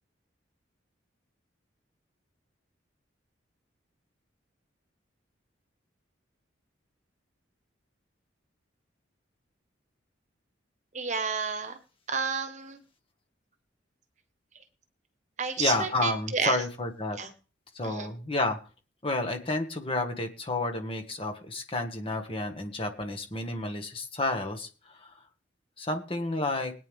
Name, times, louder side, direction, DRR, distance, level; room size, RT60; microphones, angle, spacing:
voice 1, 10.9-11.8 12.1-12.8 15.4-16.6 17.2-17.3 17.8-18.1, right 5 dB, 40° right, 8 dB, 1.4 m, -31 dB
voice 2, 15.6-17.2 17.7-18.6 19.0-25.1 25.8-26.7, left 2 dB, 30° left, 4 dB, 1.9 m, -30 dB
21.5 x 9.2 x 3.6 m, 0.38 s
head